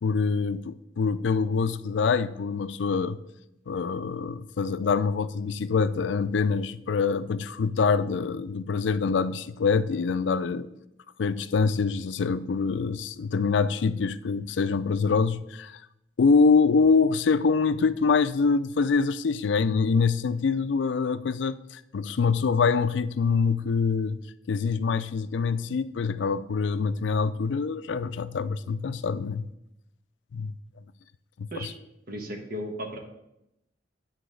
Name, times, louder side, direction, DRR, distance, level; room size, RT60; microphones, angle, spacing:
voice 1, 0.0-3.2 3.7-10.7 11.2-15.8 16.2-24.2 24.5-29.5 30.3-30.5 31.4-31.7, left 5 dB, 75° left, 0.4 m, -25 dB
voice 2, 32.1-33.0, equal, 55° right, 1.3 m, -35 dB
9.0 x 4.0 x 6.3 m
head